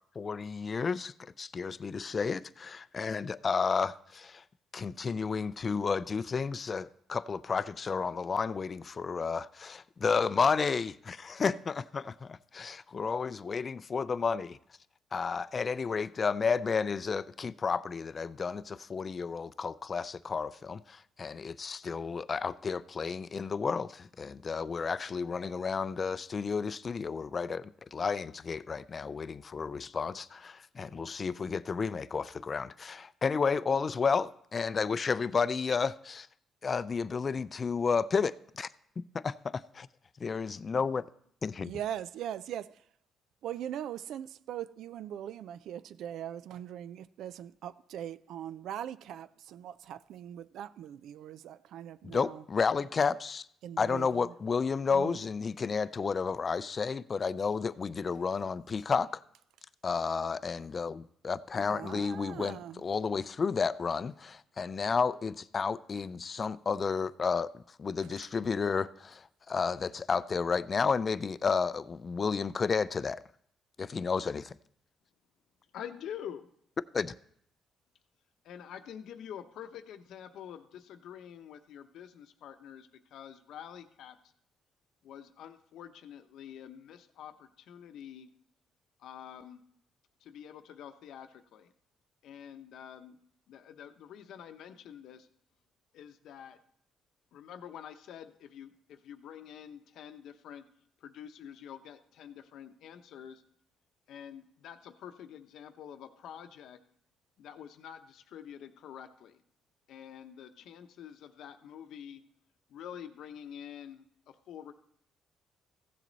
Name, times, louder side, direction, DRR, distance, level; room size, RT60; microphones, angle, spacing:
voice 1, 0.2-4.4 4.7-14.6 15.1-36.3 36.6-38.7 39.1-39.9 40.2-41.1 41.4-41.7 52.0-53.5 53.8-59.2 59.8-73.2 73.8-74.5 76.9-77.1, left 5 dB, 40° left, 0.4 m, -32 dB
voice 2, 41.7-42.7 43.4-52.4 53.6-54.1 54.9-55.2 61.7-62.8, right 10 dB, 80° right, 0.4 m, -40 dB
voice 3, 75.7-76.5 78.4-84.2 85.0-88.3 89.0-89.6 90.2-91.7 92.2-93.2 93.5-95.3 95.9-96.6 97.3-100.6 101.0-103.4 104.1-106.8 107.4-109.4 109.9-112.2 112.7-114.7, left 9 dB, 80° left, 0.8 m, -47 dB
15.5 x 7.4 x 4.0 m
cardioid pair, 90°, 0 cm